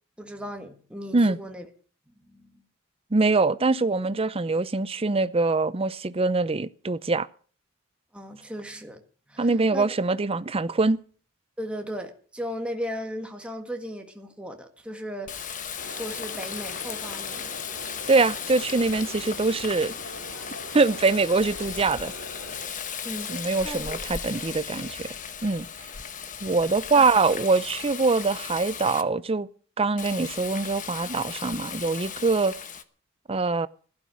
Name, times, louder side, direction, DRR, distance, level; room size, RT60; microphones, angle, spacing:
voice 1, 0.2-1.6 2.1-2.5 8.1-9.0 9.3-9.9 11.6-15.6 15.9-17.5 23.0-23.3 23.6-24.0 26.9-27.1, equal, 5° right, 1.7 m, -36 dB
voice 2, 3.1-7.3 9.4-11.0 18.1-19.9 20.7-22.1 23.3-25.1 25.4-25.7 26.4-29.5 29.8-32.5 33.3-33.7, right 3 dB, 30° right, 0.6 m, -23 dB
Water tap faucet, 15.3-29.0 30.0-32.8, left 7 dB, 40° left, 1.1 m, -36 dB
sound 1, 15.8-22.6, equal, 90° left, 6.5 m, -43 dB
16.0 x 12.5 x 6.3 m
head